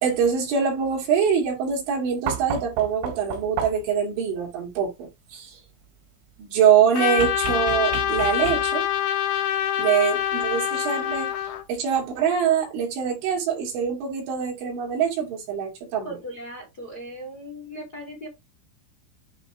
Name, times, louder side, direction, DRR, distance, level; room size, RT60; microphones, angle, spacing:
voice 1, 0.0-5.6 6.4-8.8 9.8-11.3 11.7-16.1, right 7 dB, 65° right, 4.8 m, -24 dB
sound 1, 2.3-4.0 7.2-8.9 10.5-10.6, right 9 dB, 85° right, 4.3 m, -32 dB
Trumpet, 6.9-11.6, left 10 dB, 75° left, 3.2 m, -25 dB
voice 2, 16.0-18.3, equal, 25° left, 2.8 m, -38 dB
10.5 x 4.0 x 3.6 m
omnidirectional pair, 5.9 m